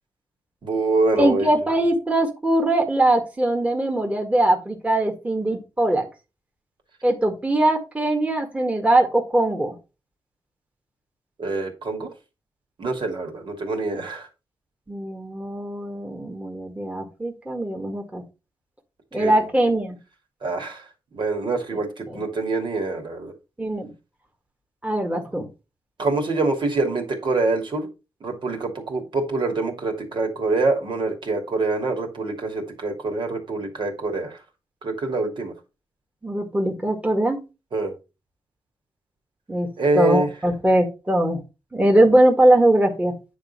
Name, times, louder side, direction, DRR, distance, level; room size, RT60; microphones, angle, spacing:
voice 1, 0.6-1.5 11.4-12.1 12.8-14.3 19.1-19.5 20.4-20.8 21.1-23.3 26.0-27.9 28.2-34.4 34.8-35.5 37.7-37.9 39.8-40.3, right 3 dB, 60° right, 3 dB, 2.9 m, -25 dB
voice 2, 1.2-6.1 7.0-9.7 14.9-18.2 19.1-20.0 22.1-22.2 23.6-23.9 24.8-25.5 36.2-37.4 39.5-39.7 40.0-41.4 41.7-43.1, right 1 dB, 15° right, 2 dB, 1.9 m, -21 dB
9.7 x 4.2 x 5.6 m, 0.28 s
wide cardioid pair, 120°, 9 cm